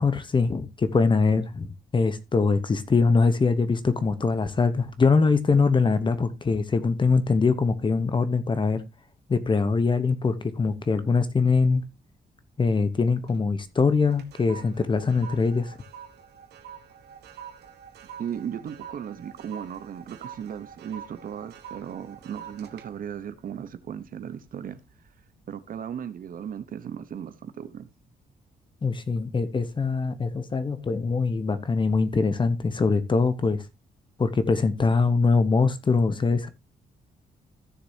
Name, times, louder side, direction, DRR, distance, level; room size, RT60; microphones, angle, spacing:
voice 1, 0.0-8.8 9.3-11.8 12.6-15.8 28.8-33.6 34.2-36.5, left 4 dB, 30° left, 1.0 m, -23 dB
sound 1, 12.9-13.5 13.8-24.3 24.8-25.1, right 8 dB, 85° right, 1.3 m, -46 dB
voice 2, 18.2-24.8 25.5-27.9, right 8 dB, 60° right, 0.9 m, -36 dB
15.0 x 6.7 x 2.8 m
cardioid pair, 115°, 16 cm